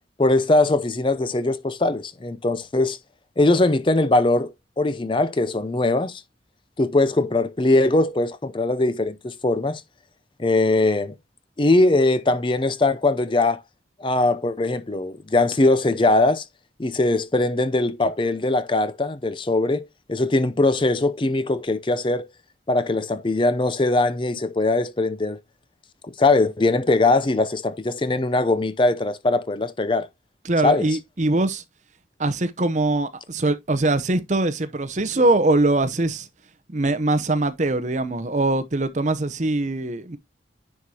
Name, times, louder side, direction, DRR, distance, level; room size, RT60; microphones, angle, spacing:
voice 1, 0.2-3.0 3.4-6.2 6.8-9.8 10.4-11.1 11.6-13.6 14.0-16.4 16.8-22.3 22.7-25.4 26.0-30.1 30.6-30.9, left 2 dB, 25° left, 0.5 m, -21 dB
voice 2, 30.4-31.6 32.2-36.3 36.7-40.2, right 2 dB, 40° right, 0.7 m, -22 dB
10.0 x 4.8 x 2.8 m
head